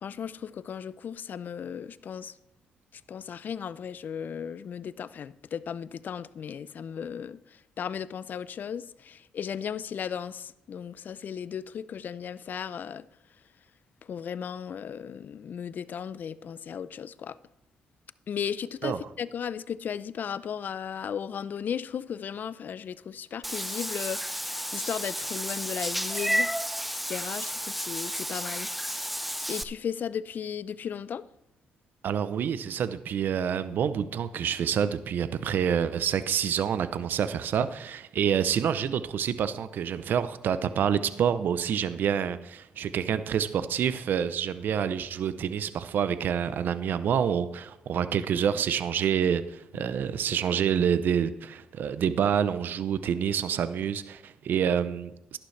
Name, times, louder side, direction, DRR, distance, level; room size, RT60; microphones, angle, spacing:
voice 1, 0.0-2.4 2.9-13.1 14.0-17.4 18.3-26.5 26.9-29.2 29.5-31.2 49.7-49.9, left 8 dB, 60° left, 0.5 m, -36 dB
Meow / Water / Bathtub (filling or washing), 23.4-29.6, equal, ahead, 0.6 m, -32 dB
voice 2, 32.0-55.4, right 8 dB, 70° right, 0.6 m, -27 dB
12.0 x 11.5 x 3.3 m
supercardioid pair, 55°, 3 cm